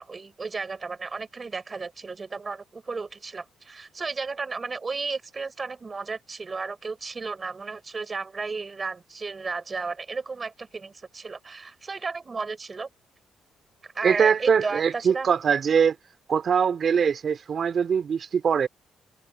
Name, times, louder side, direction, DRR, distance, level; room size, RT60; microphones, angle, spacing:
voice 1, 0.0-12.9 13.8-15.3, right 4 dB, 30° right, 5.1 m, -34 dB
voice 2, 14.0-16.0 16.3-18.7, right 7 dB, 50° right, 2.5 m, -22 dB
cardioid pair, 90°, 0 cm